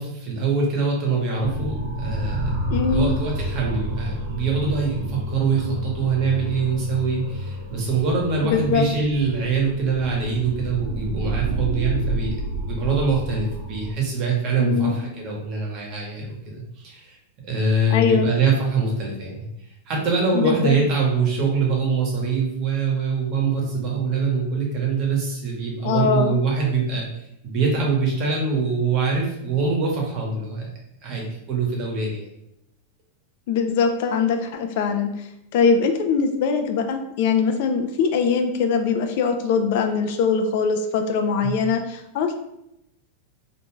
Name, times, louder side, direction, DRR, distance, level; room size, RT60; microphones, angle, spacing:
voice 1, 0.0-17.2 17.4-19.4 19.9-27.1 27.4-30.7 31.0-32.3 41.4-41.6, right 4 dB, 40° right, -2 dB, 1.0 m, -24 dB
sound 1, 1.4-13.9, right 1 dB, 70° right, 0.8 m, -30 dB
voice 2, 2.7-3.1 8.4-8.9 14.6-15.0 17.9-18.3 20.3-20.8 25.8-26.4 33.5-35.1 35.5-42.3, left 5 dB, 60° left, 6 dB, 0.3 m, -22 dB
2.5 x 2.2 x 3.0 m, 0.83 s
supercardioid pair, 140°, 0 cm